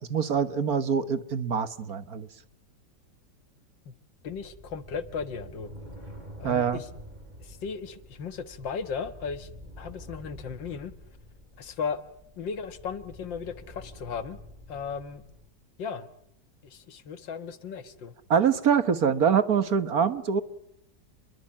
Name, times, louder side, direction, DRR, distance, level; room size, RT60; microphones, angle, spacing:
voice 1, 0.1-2.3 6.4-6.8 18.3-20.4, right 7 dB, 55° right, 11 dB, 1.7 m, -24 dB
voice 2, 4.2-5.7 6.4-6.9 7.4-9.5 9.8-10.9 11.6-12.0 12.4-14.4 14.7-15.2 15.8-16.1 16.6-18.1, left 6 dB, 85° left, 11 dB, 2.1 m, -36 dB
sound 1, 4.2-15.5, equal, 25° right, 5.2 m, -47 dB
29.5 x 22.5 x 8.7 m, 0.76 s
omnidirectional pair, 2.0 m